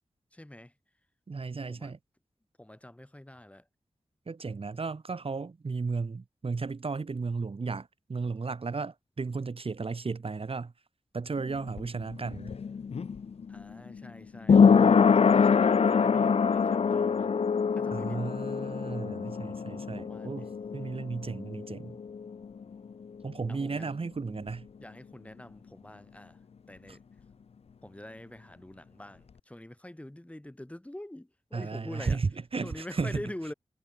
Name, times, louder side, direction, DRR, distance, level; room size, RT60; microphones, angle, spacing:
voice 1, 0.3-0.7 1.7-1.9 2.6-3.7 13.5-17.3 17.7-18.2 19.7-20.9 23.5-23.9 24.8-26.4 26.7-27.0 27.8-32.2 32.6-33.5, left 1 dB, 10° left, 5.5 m, -45 dB
voice 2, 1.3-2.0 4.3-10.7 11.1-12.5 17.9-22.0 23.2-24.7 26.9-27.0 31.5-33.2, right 4 dB, 60° right, 4.0 m, -34 dB
sound 1, 11.4-22.9 23.2-23.3, left 6 dB, 70° left, 0.7 m, -25 dB
wide cardioid pair, 95°, 11 cm